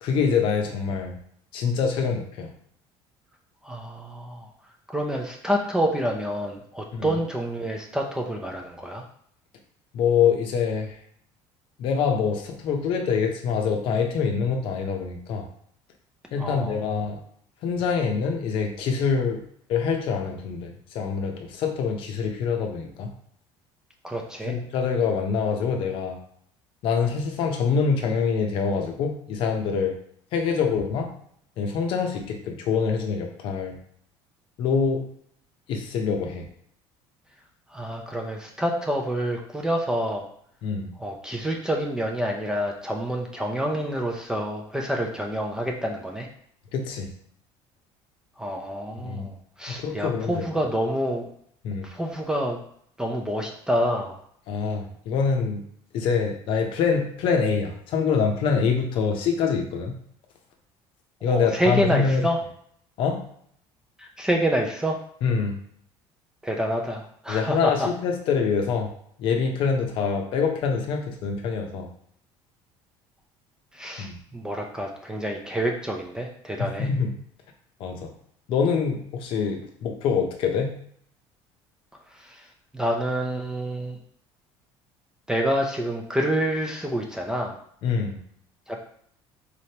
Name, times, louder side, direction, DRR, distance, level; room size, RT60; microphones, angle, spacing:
voice 1, 0.0-1.2 1.5-2.5 6.9-7.1 9.9-11.0 11.8-15.5 16.3-17.2 17.6-19.4 19.7-23.1 24.4-26.2 26.8-29.9 30.3-31.1 31.6-33.7 34.6-35.0 35.7-36.5 40.6-40.9 46.7-47.1 49.0-49.3 49.7-50.4 51.6-51.9 54.5-55.6 55.9-60.0 61.2-62.2 63.0-63.2 65.2-65.6 67.3-68.9 69.2-71.9 74.0-74.2 76.6-77.1 77.8-78.1 78.5-80.8 87.8-88.2, left 5 dB, 55° left, 4 dB, 0.7 m, -25 dB
voice 2, 3.6-4.5 4.9-9.0 16.4-16.9 24.0-24.6 37.7-40.3 41.0-46.3 48.4-51.3 51.8-52.6 53.0-54.2 61.3-62.4 64.0-65.0 66.4-67.9 73.7-76.9 82.1-82.5 82.7-84.0 85.3-87.6 88.7-88.8, equal, 5° right, 1 dB, 0.4 m, -27 dB
4.1 x 3.3 x 2.8 m, 0.64 s
cardioid pair, 160°, 11 cm